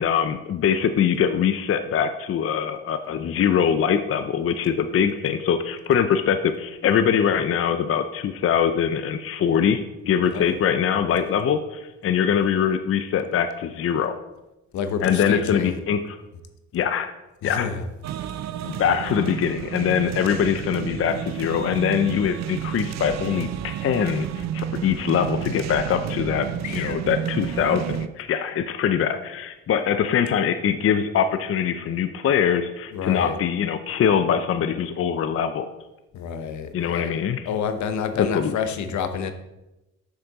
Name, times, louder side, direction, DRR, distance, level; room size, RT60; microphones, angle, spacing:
voice 1, 0.0-14.2 15.0-16.2 16.7-17.1 17.4-17.7 18.7-26.5 26.7-35.7 36.7-37.5 38.2-38.5, left 8 dB, 50° left, 9 dB, 0.5 m, -23 dB
voice 2, 14.7-15.8 17.4-17.9 18.2-19.0 26.6-27.0 32.9-33.4 36.1-39.3, left 6 dB, 70° left, 9 dB, 0.9 m, -29 dB
sound 1, 18.0-28.1, right 10 dB, 65° right, 0.5 m, -31 dB
7.0 x 6.5 x 4.0 m, 0.98 s
cardioid pair, 90°, 30 cm